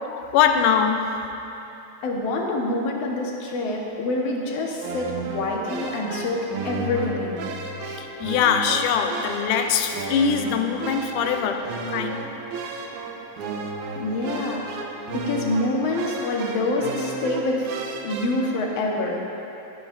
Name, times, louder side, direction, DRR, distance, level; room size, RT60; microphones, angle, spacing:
voice 1, 0.1-1.3 6.1-6.2 7.8-12.3, left 7 dB, 85° left, 6 dB, 2.2 m, -23 dB
voice 2, 2.0-7.4 14.0-14.7 15.1-19.2, left 2 dB, 60° left, -1 dB, 2.2 m, -26 dB
sound 1, 4.8-18.5, right 3 dB, 75° right, 2.2 m, -33 dB
21.5 x 9.3 x 2.6 m, 2.9 s
omnidirectional pair, 3.6 m